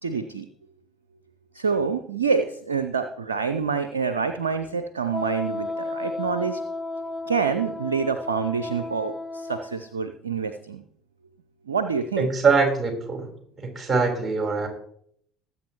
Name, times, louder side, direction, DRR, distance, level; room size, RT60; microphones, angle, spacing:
voice 1, 0.0-0.5 1.5-6.6 7.2-10.8 11.7-12.3, right 5 dB, 85° right, 10 dB, 0.5 m, -27 dB
Wind instrument woodwind instrument, 5.1-9.8, left 2 dB, 15° left, 0.7 m, -33 dB
voice 2, 12.2-13.3 13.6-14.7, right 4 dB, 30° right, 2 dB, 3.9 m, -23 dB
20.0 x 8.2 x 3.0 m, 0.67 s
figure-of-eight pair, 60°, 0 cm